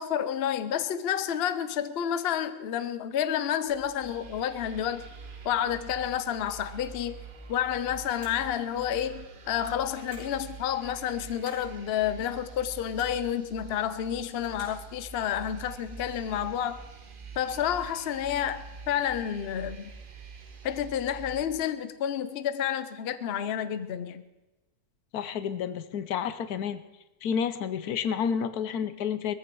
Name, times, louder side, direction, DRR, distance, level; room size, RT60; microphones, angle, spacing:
voice 1, 0.0-5.1 5.4-7.2 7.5-16.8 17.4-19.9 20.6-24.2, left 9 dB, 55° left, 12 dB, 0.7 m, -30 dB
sound 1, 3.7-21.5, right 5 dB, 35° right, 1.1 m, -46 dB
sound 2, 8.0-8.5 9.8-10.4 11.2-11.7 12.6-13.2 14.1-14.8, equal, 70° right, 6.6 m, -52 dB
voice 2, 25.1-26.8 27.2-29.3, left 7 dB, 75° left, 13 dB, 1.2 m, -30 dB
20.0 x 14.5 x 4.7 m, 1.0 s
omnidirectional pair, 1.7 m